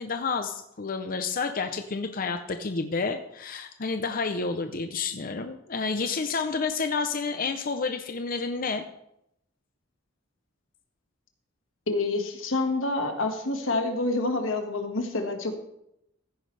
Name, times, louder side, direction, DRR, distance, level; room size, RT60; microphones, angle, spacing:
voice 1, 0.0-8.9, left 4 dB, 45° left, 7 dB, 0.6 m, -30 dB
voice 2, 11.9-15.5, left 2 dB, 85° left, 5 dB, 1.7 m, -27 dB
15.5 x 9.7 x 3.3 m, 0.80 s
head